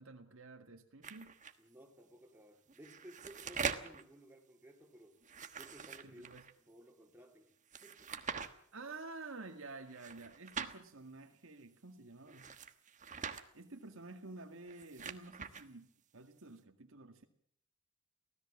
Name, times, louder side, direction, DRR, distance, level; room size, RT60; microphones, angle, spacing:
voice 1, 0.0-1.3 6.0-6.4 8.7-12.5 13.5-17.3, right 3 dB, 65° right, 5 dB, 1.9 m, -50 dB
sound 1, 1.0-1.5 2.7-4.0 5.2-6.5 7.7-8.5 9.9-10.8 12.3-13.4 14.6-15.6, right 6 dB, 35° right, 1.3 m, -43 dB
voice 2, 1.6-5.2 5.5-6.3 6.7-7.5 7.8-8.1, equal, 10° right, 1 dB, 3.6 m, -57 dB
24.5 x 16.5 x 7.3 m, 0.65 s
head